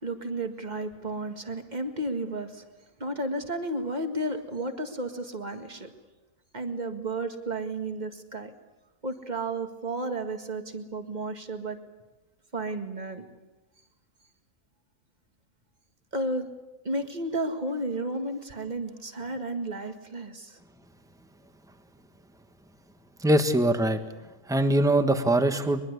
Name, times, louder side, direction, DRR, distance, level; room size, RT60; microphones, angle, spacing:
voice 1, 0.0-2.7 3.0-5.9 6.5-8.5 9.0-11.8 12.5-13.2 16.1-16.5 16.8-20.6, right 2 dB, 30° right, 6 dB, 2.0 m, -32 dB
voice 2, 23.2-24.0 24.5-25.8, right 1 dB, 5° right, 8 dB, 1.3 m, -22 dB
23.0 x 22.5 x 8.2 m, 1.1 s
omnidirectional pair, 1.5 m